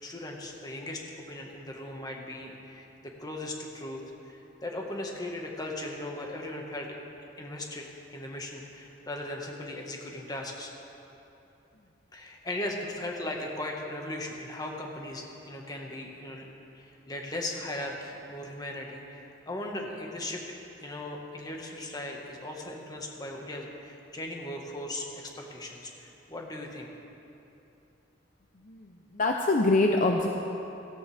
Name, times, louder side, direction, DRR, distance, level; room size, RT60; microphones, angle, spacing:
voice 1, 0.0-4.0 4.3-6.9 7.4-10.7 12.1-16.5 16.7-26.9, left 1 dB, 20° left, 0 dB, 1.6 m, -38 dB
voice 2, 28.6-30.3, left 2 dB, 45° left, 2 dB, 0.7 m, -25 dB
16.5 x 15.5 x 3.5 m, 2.9 s
head